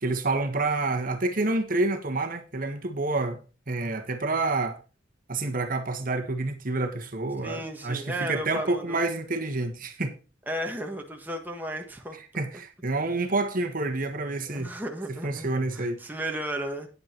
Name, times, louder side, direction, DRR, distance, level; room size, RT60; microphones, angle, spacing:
voice 1, 0.0-3.4 3.7-4.8 5.3-10.1 12.3-14.7 15.2-16.0, right 2 dB, 50° right, 1.4 m, -28 dB
voice 2, 7.4-9.0 10.5-12.2 14.5-16.9, right 1 dB, 10° right, 1.4 m, -34 dB
9.4 x 8.7 x 4.5 m
head